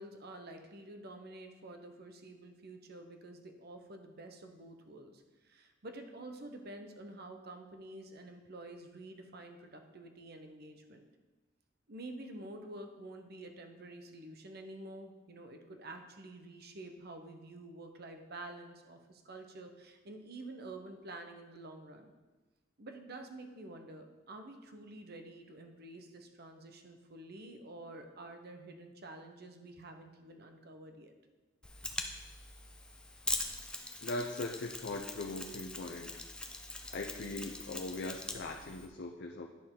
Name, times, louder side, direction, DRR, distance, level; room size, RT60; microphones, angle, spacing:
voice 1, 0.0-11.0 11.9-22.1 22.8-31.1, right 2 dB, 55° right, 5 dB, 0.9 m, -49 dB
Mechanisms, 31.6-38.9, left 2 dB, 5° left, 0.6 m, -42 dB
voice 2, 34.0-36.2 36.9-39.5, left 2 dB, 60° left, 2 dB, 0.6 m, -40 dB
10.0 x 6.7 x 3.8 m, 1.2 s
head